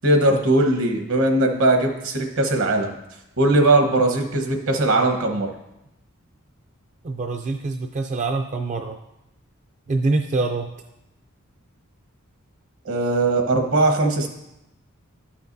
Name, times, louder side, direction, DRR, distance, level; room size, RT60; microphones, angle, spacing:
voice 1, 0.0-2.9 3.4-5.5 12.8-14.3, right 2 dB, 70° right, 4 dB, 1.1 m, -19 dB
voice 2, 7.0-9.0 9.9-10.7, right 3 dB, 35° right, 4 dB, 0.4 m, -25 dB
12.0 x 5.8 x 2.7 m, 0.90 s
head